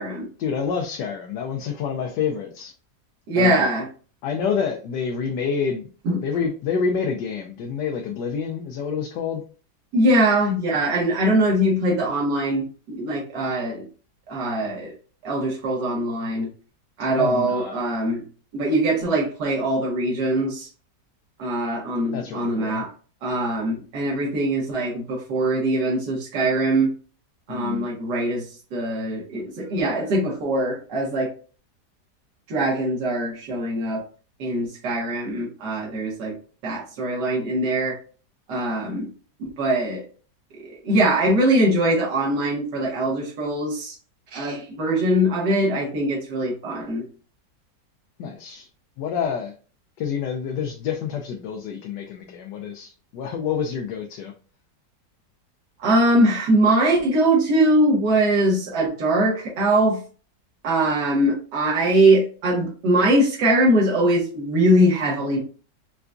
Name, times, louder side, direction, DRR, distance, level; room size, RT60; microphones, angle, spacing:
voice 1, 0.4-2.7 3.4-3.7 4.2-5.9 6.2-9.4 17.2-17.8 22.1-22.8 27.5-28.0 48.2-48.7 49.0-49.5 50.0-54.3, left 6 dB, 85° left, 2 dB, 1.2 m, -28 dB
voice 2, 3.3-3.9 6.1-6.2 9.9-13.9 14.3-14.9 15.2-16.5 17.0-18.2 18.5-20.7 21.4-22.9 23.2-26.9 27.5-28.5 28.7-31.3 32.5-34.0 34.4-36.3 36.6-38.0 38.5-39.1 39.4-40.0 40.8-44.0 44.3-47.0 55.8-60.0 60.6-65.4, right 1 dB, 85° right, -3 dB, 1.8 m, -22 dB
4.7 x 2.2 x 2.5 m, 0.38 s
omnidirectional pair, 1.8 m